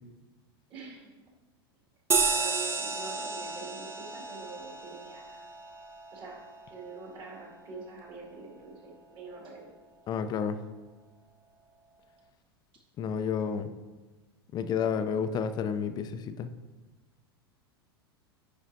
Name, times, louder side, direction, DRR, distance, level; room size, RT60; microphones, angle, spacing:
voice 1, 0.7-1.1 2.2-5.5 6.1-6.4 6.7-9.7, right 4 dB, 40° right, -2 dB, 2.0 m, -45 dB
sound 1, 2.1-7.0, right 4 dB, 20° right, 0.7 m, -32 dB
voice 2, 10.1-10.6 13.0-13.7 14.5-16.5, left 7 dB, 35° left, 10 dB, 0.5 m, -30 dB
9.7 x 4.9 x 2.6 m, 1.3 s
hypercardioid pair, 90°, 13 cm